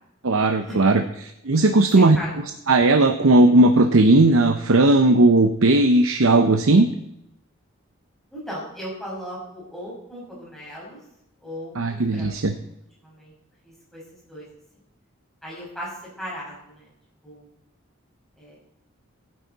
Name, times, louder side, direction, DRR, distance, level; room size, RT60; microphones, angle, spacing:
voice 1, 0.2-2.2 2.7-6.9 11.8-12.5, right 2 dB, 80° right, 7 dB, 0.8 m, -17 dB
voice 2, 8.3-11.0 11.4-12.3 13.0-13.3 13.6-14.5 15.4-16.9 17.2-17.5 18.4-18.6, equal, ahead, -7 dB, 5.8 m, -37 dB
15.5 x 9.7 x 4.1 m, 0.81 s
head